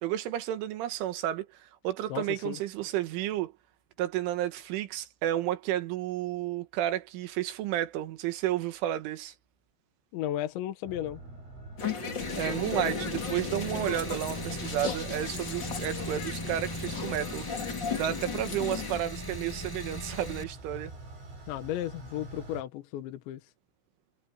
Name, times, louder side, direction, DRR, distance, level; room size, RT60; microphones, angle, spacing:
voice 1, 0.0-3.5 4.0-9.3 12.4-17.5 18.0-20.9, right 12 dB, 90° right, 4.0 m, -32 dB
voice 2, 2.1-2.6 10.1-11.2 21.5-23.4, left 12 dB, 75° left, 3.5 m, -34 dB
sound 1, 10.8-22.6, right 2 dB, 70° right, 10.5 m, -46 dB
sound 2, 11.8-19.0, left 6 dB, 35° left, 1.9 m, -36 dB
Car / Engine, 12.2-20.4, equal, 5° left, 6.9 m, -39 dB
omnidirectional pair, 5.4 m